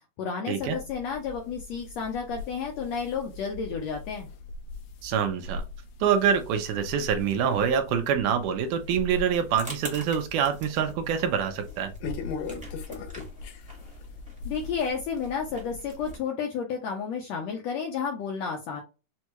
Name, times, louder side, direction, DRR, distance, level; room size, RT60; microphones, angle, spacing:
voice 1, 0.2-4.3 14.5-18.8, left 6 dB, 75° left, 2 dB, 1.6 m, -31 dB
sound 1, 0.6-16.1, left 3 dB, 90° left, 2.6 m, -41 dB
voice 2, 5.0-5.6 6.0-11.9, right 7 dB, 80° right, 7 dB, 2.1 m, -25 dB
sound 2, 8.8-16.2, equal, 5° right, 0.7 m, -46 dB
6.2 x 2.3 x 3.0 m, 0.29 s
omnidirectional pair, 3.8 m